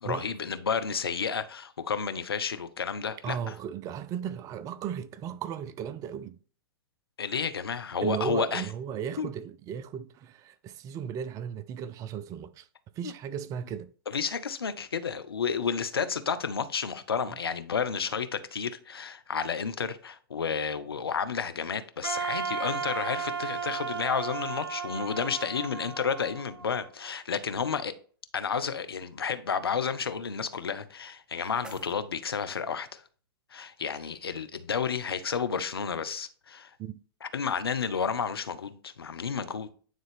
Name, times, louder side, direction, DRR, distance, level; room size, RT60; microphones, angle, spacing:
voice 1, 0.0-3.5 7.2-8.7 9.2-9.3 13.0-13.1 14.1-27.9 28.3-33.0 33.5-36.7 37.2-39.7, left 6 dB, 75° left, 0.8 m, -31 dB
voice 2, 3.2-6.4 8.0-12.7 13.0-13.9 36.8-37.0, right 8 dB, 25° right, 0.4 m, -35 dB
Wind instrument woodwind instrument, 22.0-27.1, right 6 dB, 75° right, 0.9 m, -34 dB
sound 1, 30.9-32.9, equal, 5° right, 0.9 m, -52 dB
9.3 x 3.8 x 3.5 m
figure-of-eight pair, 105°, 13 cm